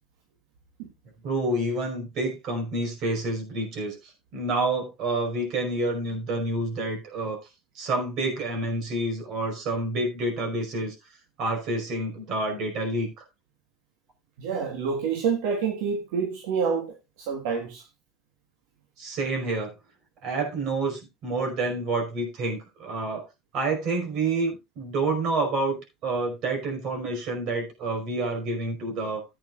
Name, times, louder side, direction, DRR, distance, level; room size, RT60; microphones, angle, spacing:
voice 1, 1.2-7.4 7.7-10.9 11.4-13.2 19.0-19.7 20.2-23.2 23.5-29.2, right 2 dB, 65° right, 5.1 m, -28 dB
voice 2, 14.4-17.8, right 6 dB, 90° right, 1.5 m, -28 dB
14.5 x 8.8 x 2.5 m
supercardioid pair, 105°, 0 cm